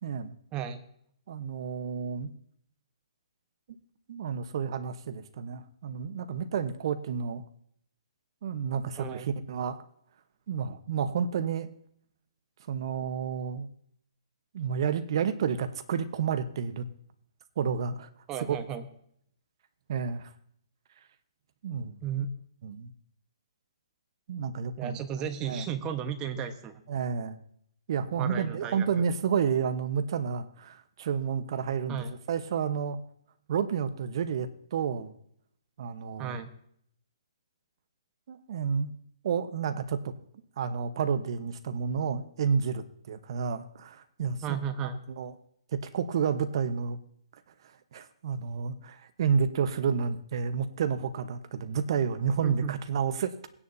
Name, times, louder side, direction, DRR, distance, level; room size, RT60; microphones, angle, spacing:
voice 1, 0.0-0.4 1.3-2.3 4.1-7.4 8.4-9.8 10.5-11.7 12.7-13.7 14.5-16.8 17.6-18.1 18.5-18.6 19.9-20.3 21.6-22.0 22.6-22.9 24.3-25.0 25.4-25.7 26.9-27.4 27.9-33.0 33.5-35.1 35.8-36.5 38.3-38.9 39.2-40.1 40.6-44.6 45.1-45.3 45.7-47.0 47.9-53.5, right 6 dB, 55° right, 10 dB, 1.1 m, -30 dB
voice 2, 0.5-0.8 9.0-9.3 18.3-18.9 22.0-22.3 24.8-26.8 28.2-29.0 31.9-32.2 36.2-36.5 44.4-45.0 52.4-52.7, right 8 dB, 25° right, 7 dB, 1.3 m, -34 dB
18.5 x 9.8 x 2.8 m, 0.67 s
hypercardioid pair, 135°, 3 cm